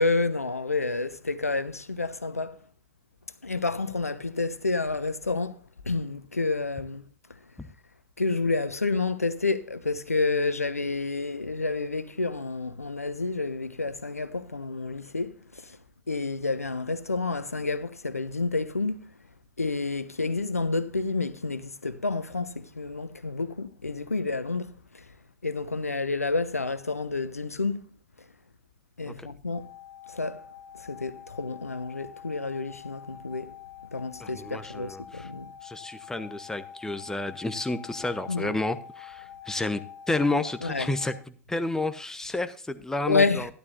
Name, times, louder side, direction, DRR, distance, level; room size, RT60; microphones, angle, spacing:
voice 1, 0.0-2.6 3.4-5.6 5.8-7.0 8.2-15.8 16.1-19.1 19.6-25.1 25.4-27.8 29.0-29.7 30.1-30.4 30.8-33.5 33.9-35.5 38.3-38.6 40.6-40.9 43.1-43.5, left 3 dB, 85° left, 0.8 m, -29 dB
sound 1, 29.5-41.2, left 9 dB, 35° left, 1.1 m, -46 dB
voice 2, 34.2-35.3 35.6-39.8 40.1-41.1 41.5-43.5, left 2 dB, 5° left, 1.0 m, -30 dB
12.5 x 12.0 x 2.6 m
figure-of-eight pair, 85°, 8 cm